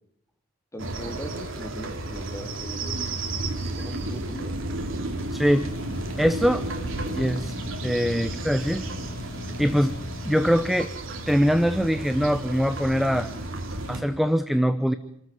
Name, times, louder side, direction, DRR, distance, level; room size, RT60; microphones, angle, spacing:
voice 1, 0.7-2.9 3.7-4.5, equal, 15° left, 3 dB, 3.6 m, -39 dB
sound 1, 0.8-14.0, right 2 dB, 65° right, 3.9 m, -33 dB
voice 2, 5.3-5.7 6.2-6.7 7.1-7.5 7.8-8.8 9.6-9.9 10.2-10.9 11.3-13.3 13.9-14.9, equal, ahead, 10 dB, 0.8 m, -22 dB
sound 2, 5.6-10.8, left 1 dB, 75° left, 3.1 m, -40 dB
28.0 x 13.5 x 9.4 m, 0.77 s
head